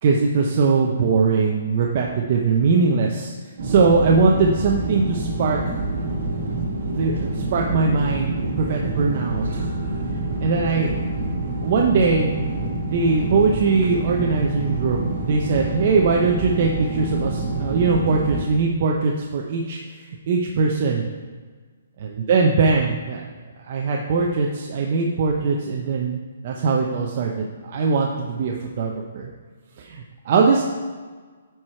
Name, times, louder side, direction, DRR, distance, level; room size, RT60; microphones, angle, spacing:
voice 1, 0.0-3.3 3.6-5.8 7.0-9.4 10.4-11.0 11.6-12.3 12.9-19.8 20.3-21.0 22.0-23.2 23.7-29.3 29.8-30.6, right 4 dB, 40° right, 0 dB, 0.7 m, -21 dB
sound 1, 3.6-18.4, right 2 dB, 65° right, 1.4 m, -27 dB
9.2 x 4.7 x 4.4 m, 1.5 s
hypercardioid pair, 170°, 0 cm